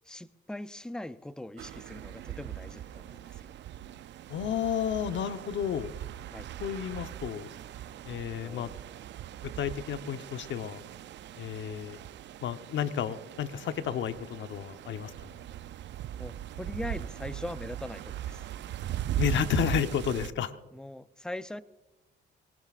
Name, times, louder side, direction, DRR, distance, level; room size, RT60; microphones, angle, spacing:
voice 1, 0.1-3.5 6.3-6.5 8.4-8.7 9.7-9.8 16.2-18.4 20.7-21.6, left 1 dB, 5° left, 13 dB, 0.6 m, -41 dB
sound 1, 1.6-20.3, right 12 dB, 65° right, 0.5 m, -40 dB
voice 2, 4.3-5.9 6.6-7.5 8.0-8.7 9.6-10.8 11.4-12.0 12.4-15.1 19.2-20.5, left 9 dB, 70° left, 9 dB, 1.0 m, -31 dB
23.5 x 18.5 x 2.5 m, 1.1 s
cardioid pair, 90°, 20 cm